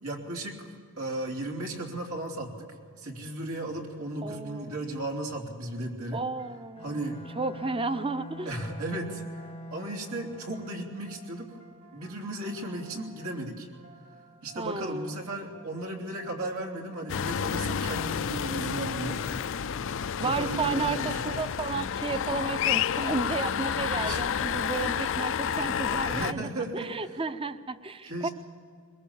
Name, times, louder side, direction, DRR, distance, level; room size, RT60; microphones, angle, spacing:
voice 1, 0.0-0.6 1.0-6.2 6.8-7.2 8.4-11.5 11.9-13.7 14.4-19.2 20.2-21.2 24.0-24.2 26.1-26.9 28.1-28.3, right 1 dB, 85° right, 1 dB, 3.3 m, -35 dB
voice 2, 4.2-4.8 6.1-7.0 7.4-8.5 14.6-15.3 20.2-28.3, right 3 dB, 25° right, 12 dB, 0.7 m, -33 dB
sound 1, 6.4-20.2, right 3 dB, 65° right, 4.0 m, -56 dB
Bowed string instrument, 6.8-11.1, equal, 25° left, 0.8 m, -44 dB
sound 2, 17.1-26.3, left 8 dB, 60° left, 0.5 m, -30 dB
22.0 x 21.5 x 7.3 m, 2.2 s
head